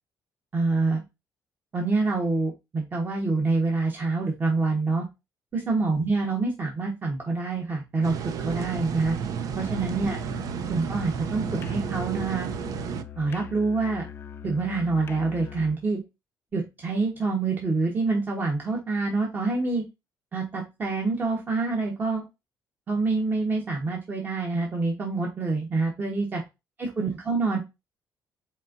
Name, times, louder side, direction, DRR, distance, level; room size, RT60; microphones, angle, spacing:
voice 1, 0.5-1.0 1.7-5.0 5.5-8.2 8.4-9.2 9.6-10.2 10.7-12.5 13.2-14.1 14.4-16.0 16.5-19.8 20.3-22.2 22.9-26.4 26.8-27.6, right 3 dB, 25° right, 0 dB, 1.1 m, -26 dB
sound 1, 8.0-13.0, right 7 dB, 55° right, 0.5 m, -32 dB
Musical instrument, 9.5-15.9, left 9 dB, 30° left, 0.4 m, -42 dB
4.4 x 4.3 x 2.5 m, 0.23 s
cardioid pair, 150°, 7 cm